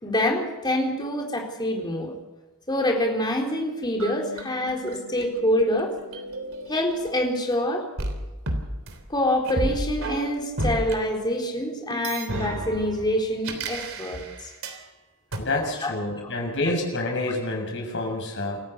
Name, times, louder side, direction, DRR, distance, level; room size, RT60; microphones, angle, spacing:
voice 1, 0.0-2.2 2.7-5.9 6.7-7.9 9.1-14.5 15.8-15.9 16.2-16.3 16.6-16.7, left 1 dB, 20° left, 1 dB, 4.1 m, -26 dB
sound 1, 4.0-7.5 8.0-11.0 11.9-14.8 15.3-15.4, right 1 dB, 65° right, 3.4 m, -33 dB
voice 2, 15.4-18.6, left 2 dB, 55° left, 2 dB, 6.7 m, -28 dB
27.5 x 14.5 x 6.8 m, 1.2 s
head